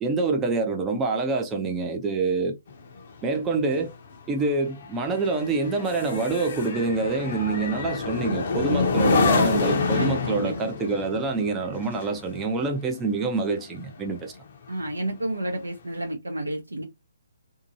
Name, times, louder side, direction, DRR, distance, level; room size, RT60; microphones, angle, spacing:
voice 1, 0.0-2.6 3.2-3.9 4.3-14.3, right 3 dB, 15° right, 0.4 m, -26 dB
sound 1, 2.7-14.4 14.8-15.1, left 4 dB, 45° left, 0.7 m, -28 dB
voice 2, 9.9-10.6 14.7-16.8, right 1 dB, 80° right, 0.6 m, -30 dB
2.7 x 2.5 x 2.6 m
figure-of-eight pair, 135°, 0 cm